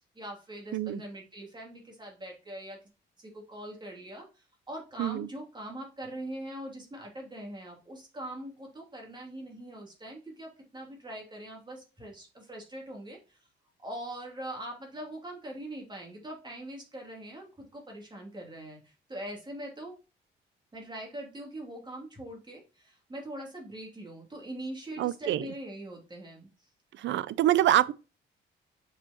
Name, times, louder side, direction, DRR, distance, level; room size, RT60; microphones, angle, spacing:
voice 1, 0.1-2.8 3.2-13.4 13.8-19.9 20.7-26.5, right 1 dB, 20° right, 2.6 m, -42 dB
voice 2, 24.9-25.5 26.9-27.9, right 13 dB, 70° right, 0.5 m, -26 dB
7.4 x 4.9 x 2.9 m
cardioid pair, 90°, 20 cm